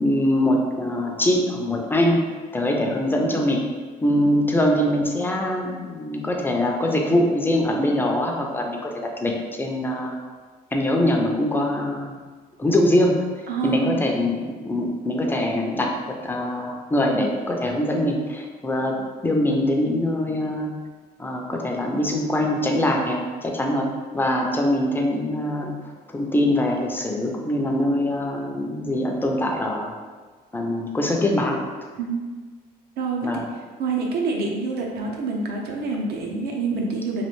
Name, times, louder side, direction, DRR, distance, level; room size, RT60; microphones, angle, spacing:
voice 1, 0.0-2.2 2.5-3.6 4.0-9.3 9.6-10.2 10.7-12.1 12.6-13.2 13.6-15.9 16.2-18.9 19.2-20.7 21.2-23.9 24.1-25.8 26.1-29.9 30.5-31.6 33.2-33.4, left 1 dB, 10° left, 1 dB, 0.4 m, -23 dB
voice 2, 13.5-14.0 31.9-32.2 33.0-33.3 33.8-37.3, right 4 dB, 65° right, 0 dB, 0.6 m, -26 dB
3.2 x 2.4 x 3.0 m, 1.4 s
cardioid pair, 110°, 17 cm